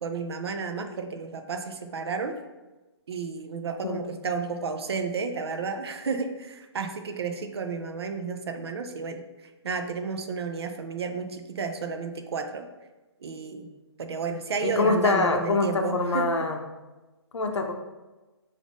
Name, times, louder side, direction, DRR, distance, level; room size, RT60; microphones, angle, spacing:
voice 1, 0.0-2.4 3.1-9.3 9.6-12.7 13.2-16.3, right 5 dB, 65° right, 6 dB, 0.5 m, -32 dB
voice 2, 14.6-16.6 17.3-17.7, left 3 dB, 85° left, 4 dB, 0.6 m, -24 dB
5.0 x 2.6 x 3.5 m, 1.1 s
hypercardioid pair, 175°, 14 cm